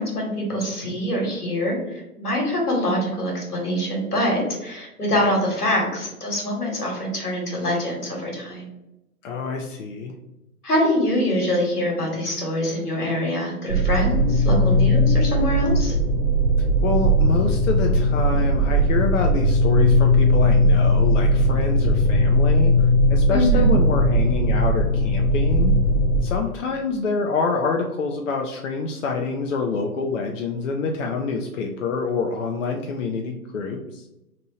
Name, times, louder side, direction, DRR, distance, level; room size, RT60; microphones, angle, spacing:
voice 1, 0.0-8.6 10.6-15.9 23.3-23.7, left 1 dB, 80° left, -1 dB, 1.4 m, -24 dB
voice 2, 9.2-10.1 16.8-25.8 26.2-34.0, left 4 dB, 55° left, 2 dB, 0.5 m, -26 dB
sound 1, 13.7-26.2, equal, 30° right, 0.7 m, -18 dB
2.8 x 2.5 x 3.0 m, 0.90 s
figure-of-eight pair, 120°, 45 cm